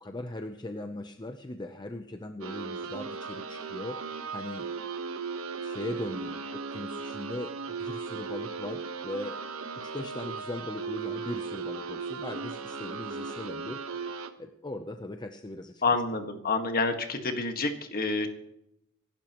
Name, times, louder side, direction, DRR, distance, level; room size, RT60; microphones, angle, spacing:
voice 1, 0.0-4.0 4.3-4.6 5.6-9.4 9.8-13.8 14.4-15.8, left 1 dB, 20° left, 6 dB, 0.7 m, -39 dB
sound 1, 2.4-14.3, right 5 dB, 70° right, 1.2 m, -37 dB
voice 2, 15.8-18.3, left 3 dB, 45° left, 6 dB, 1.7 m, -28 dB
24.5 x 12.0 x 3.0 m, 0.84 s
head